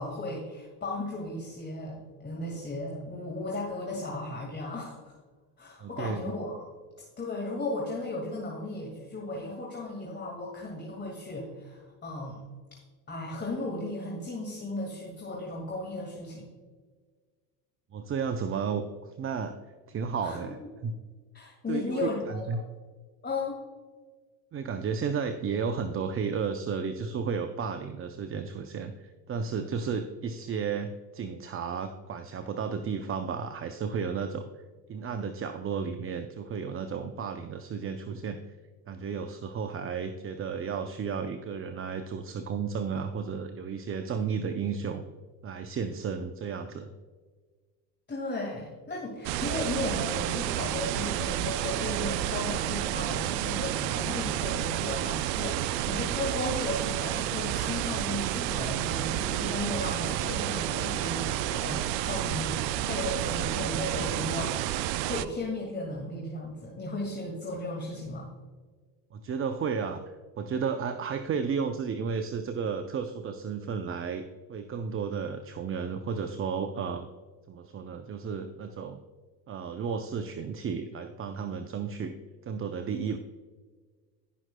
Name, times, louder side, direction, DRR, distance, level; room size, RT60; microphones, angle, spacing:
voice 1, 0.0-5.2 5.6-6.7 7.2-12.4 13.1-16.5 20.2-20.7 21.3-22.6 23.2-23.6 48.1-68.3, left 2 dB, 20° left, -2 dB, 2.0 m, -35 dB
voice 2, 5.8-6.3 17.9-19.5 19.9-20.6 20.8-20.9 21.7-22.6 24.5-34.4 34.9-38.4 38.9-45.0 45.4-46.9 69.1-70.0 70.4-74.2 74.5-77.1 77.5-79.0 79.5-82.1 82.4-83.2, right 6 dB, 25° right, 8 dB, 0.5 m, -33 dB
sound 1, 49.2-65.2, right 13 dB, 80° right, 0.6 m, -30 dB
16.5 x 5.9 x 2.2 m, 1.5 s
hypercardioid pair, 75°, 49 cm